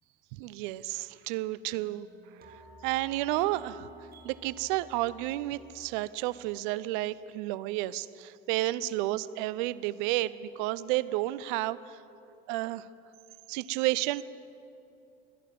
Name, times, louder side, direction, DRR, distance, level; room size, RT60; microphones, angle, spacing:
voice 1, 0.3-2.1 2.8-3.9 4.2-12.0 12.5-12.9 13.5-14.2, right 17 dB, 55° right, 18 dB, 0.5 m, -31 dB
sound 1, 1.7-6.1, right 2 dB, 30° right, 2.5 m, -53 dB
14.0 x 10.5 x 9.3 m, 2.8 s
figure-of-eight pair, 70°, 30 cm